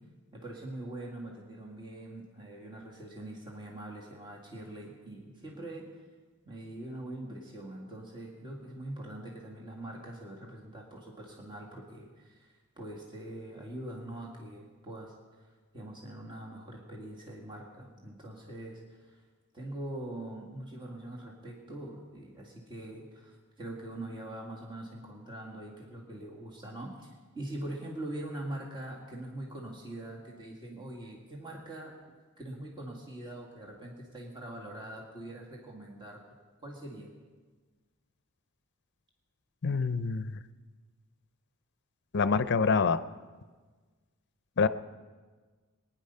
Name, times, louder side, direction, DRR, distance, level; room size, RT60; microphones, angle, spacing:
voice 1, 0.3-5.9 6.5-15.1 15.7-19.2 19.5-36.2 36.6-37.1, right 1 dB, 20° right, -2 dB, 2.0 m, -43 dB
voice 2, 39.6-40.4 42.1-43.0 44.6-44.7, left 5 dB, 55° left, 14 dB, 0.6 m, -26 dB
20.5 x 10.0 x 5.6 m, 1.4 s
head